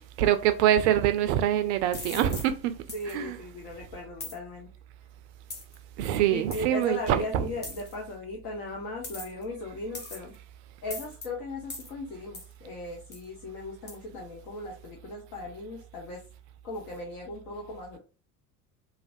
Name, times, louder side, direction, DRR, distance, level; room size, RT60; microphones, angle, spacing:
voice 1, 0.2-2.7 3.1-3.3 6.0-7.5, right 11 dB, 50° right, 0.4 m, -24 dB
sound 1, 1.9-2.5 2.9-3.1 4.2-4.4 5.5-5.7 6.5-6.6 7.6-7.9 9.0-9.4 9.9-10.3 10.9-11.3 11.7-11.9 12.3-12.5 13.1-13.2 13.9-14.0, left 2 dB, 20° left, 0.9 m, -40 dB
voice 2, 2.9-4.7 6.3-10.3 10.8-16.2 16.6-18.0, left 2 dB, 50° left, 0.9 m, -37 dB
3.2 x 2.5 x 2.5 m
figure-of-eight pair, 70°, 46 cm